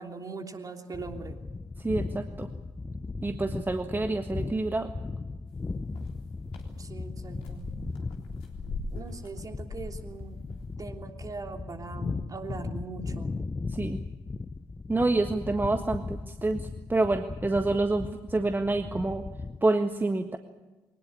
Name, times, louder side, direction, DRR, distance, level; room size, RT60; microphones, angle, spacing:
voice 1, 0.0-1.4 6.7-7.7 8.9-10.4 10.8-13.4, right 4 dB, 35° right, 4 dB, 3.2 m, -41 dB
sound 1, 0.9-19.6, left 3 dB, 20° left, 0.9 m, -37 dB
voice 2, 1.8-2.5 3.2-4.9 13.7-14.0 14.9-19.2 19.6-20.4, right 2 dB, 20° right, 6 dB, 1.6 m, -27 dB
sound 2, 5.5-10.7, left 3 dB, 70° left, 3.6 m, -42 dB
22.5 x 19.5 x 8.8 m, 1.2 s
figure-of-eight pair, 45°, 10 cm